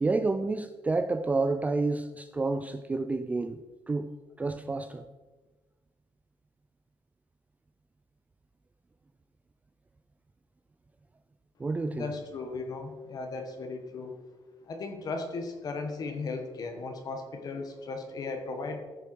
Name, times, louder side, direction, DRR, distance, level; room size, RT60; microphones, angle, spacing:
voice 1, 0.0-3.6 3.9-4.1 4.4-5.0 11.6-12.1, right 3 dB, 15° right, 0.4 m, -29 dB
voice 2, 11.9-14.2 14.7-18.8, left 3 dB, 40° left, 1.4 m, -36 dB
15.0 x 6.8 x 4.6 m
cardioid pair, 160°, 10 cm